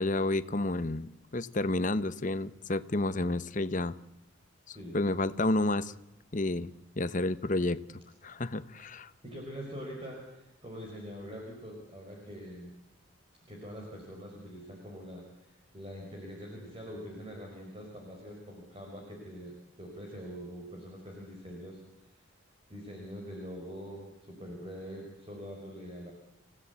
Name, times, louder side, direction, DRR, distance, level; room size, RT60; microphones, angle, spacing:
voice 1, 0.0-4.0 4.7-5.9 6.3-7.8 8.2-9.1, left 2 dB, 40° left, 14 dB, 1.0 m, -30 dB
voice 2, 9.2-12.7 13.5-21.8 22.7-26.1, equal, 25° right, -1 dB, 5.1 m, -44 dB
30.0 x 17.0 x 8.3 m, 0.90 s
head